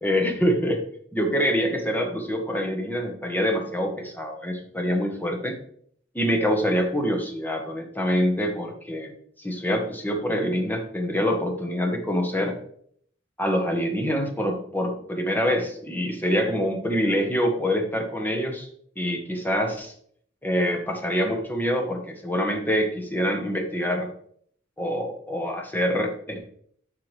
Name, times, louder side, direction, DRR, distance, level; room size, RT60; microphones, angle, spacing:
voice 1, 0.0-0.8 1.1-5.6 6.1-12.6 13.4-18.7 19.0-19.9 20.4-24.1 24.8-26.5, equal, 10° left, 2 dB, 1.2 m, -25 dB
11.5 x 4.7 x 3.3 m, 0.63 s
head